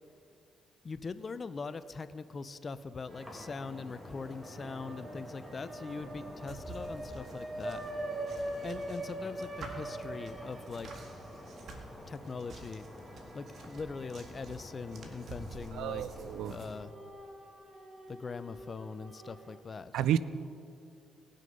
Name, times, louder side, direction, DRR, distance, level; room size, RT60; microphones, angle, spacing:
voice 1, 0.8-7.8 8.4-10.9 12.1-12.8 13.3-16.1 16.5-16.9 18.1-20.0, left 4 dB, 35° left, 14 dB, 0.5 m, -41 dB
sound 1, 3.1-16.8, equal, ahead, 2.4 m, -49 dB
sound 2, 3.1-3.9 4.2-14.5 14.9-15.0 16.2-19.6, right 1 dB, 30° right, 1.4 m, -44 dB
sound 3, 5.9-16.7, right 2 dB, 60° right, 1.7 m, -49 dB
voice 2, 15.7-16.5 19.9-20.2, right 11 dB, 85° right, 16 dB, 0.4 m, -30 dB
18.5 x 6.4 x 5.3 m, 2.5 s
cardioid pair, 90°, 0 cm